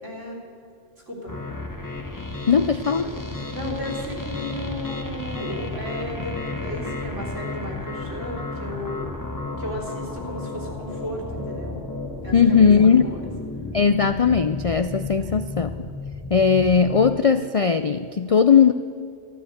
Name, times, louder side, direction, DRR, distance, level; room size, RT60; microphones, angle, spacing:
voice 1, 0.0-0.4 1.1-1.3 3.0-3.2 3.5-9.1 9.6-11.8 12.2-13.3 15.2-15.5, equal, 75° right, -1 dB, 3.5 m, -34 dB
sound 1, 1.3-17.1, left 2 dB, 15° left, 1.1 m, -33 dB
voice 2, 2.5-3.1 12.3-13.1 13.7-15.7 16.3-18.7, left 6 dB, 60° left, 9 dB, 0.3 m, -18 dB
12.5 x 12.5 x 8.0 m, 2.4 s
omnidirectional pair, 1.3 m